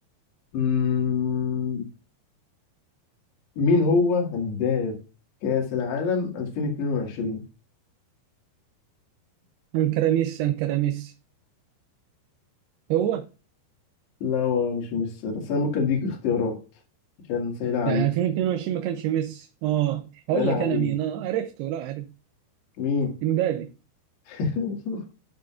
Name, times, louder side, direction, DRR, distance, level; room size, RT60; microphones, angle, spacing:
voice 1, 0.5-1.9 3.6-5.0 5.4-7.4 14.2-16.6 17.3-18.1 20.3-20.9 22.8-23.1 24.3-25.0, left 5 dB, 85° left, 4.1 m, -25 dB
voice 2, 9.7-11.1 12.9-13.3 17.9-22.1 23.2-23.7, right 12 dB, 80° right, 2.7 m, -25 dB
11.5 x 10.5 x 2.4 m
omnidirectional pair, 4.7 m